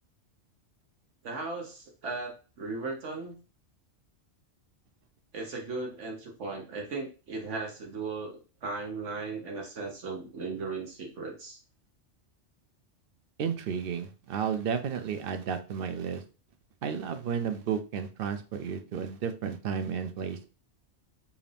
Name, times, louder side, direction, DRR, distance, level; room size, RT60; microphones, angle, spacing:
voice 1, 1.2-3.3 5.3-11.6, right 3 dB, 85° right, 1 dB, 1.5 m, -37 dB
voice 2, 13.4-16.2 16.8-20.5, right 7 dB, 60° right, 8 dB, 0.7 m, -32 dB
4.8 x 2.5 x 3.4 m, 0.34 s
omnidirectional pair, 1.2 m